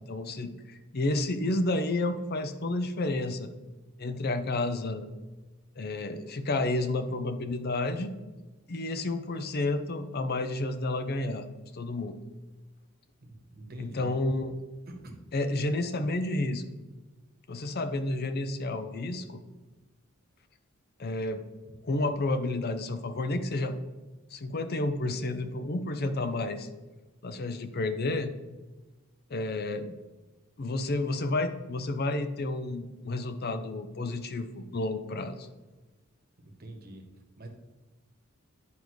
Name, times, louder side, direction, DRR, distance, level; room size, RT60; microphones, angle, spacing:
voice 1, 0.0-3.5 4.0-5.1 5.8-8.1 8.7-11.5 11.7-12.1 13.8-14.6 15.3-16.6 17.5-19.4 21.0-21.4 21.8-23.8 24.3-26.7 27.2-28.3 29.3-29.9 30.6-35.5, left 2 dB, 45° left, 9 dB, 0.6 m, -30 dB
voice 2, 13.5-14.1 14.9-15.1 36.4-37.0 37.4-37.5, right 1 dB, 45° right, 2 dB, 1.2 m, -45 dB
9.6 x 5.1 x 3.1 m, 1.2 s
head